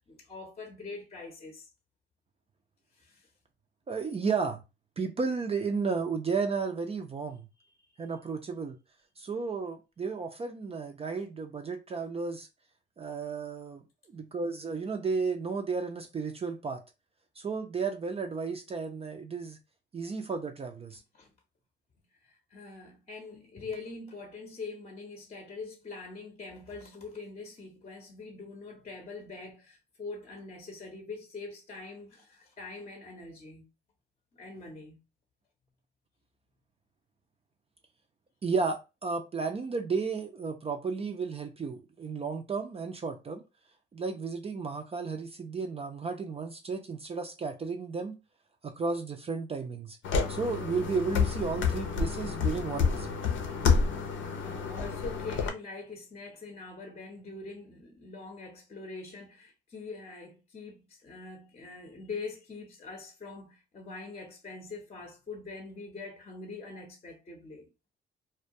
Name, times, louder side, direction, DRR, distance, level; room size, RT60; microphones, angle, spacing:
voice 1, 0.1-1.7 3.0-3.3 21.1-21.3 22.2-33.7 34.3-35.0 54.0-67.7, left 3 dB, 30° left, 0.7 m, -43 dB
voice 2, 3.9-4.6 5.0-7.5 8.0-8.8 9.2-12.5 13.0-13.8 14.1-16.8 17.4-19.6 19.9-21.0 38.4-43.4 43.9-48.1 48.6-50.0 50.3-53.1, right 4 dB, 30° right, 0.4 m, -33 dB
sound 1, 50.0-55.5, left 5 dB, 75° left, 0.6 m, -29 dB
2.2 x 2.2 x 2.6 m
cardioid pair, 90°, 20 cm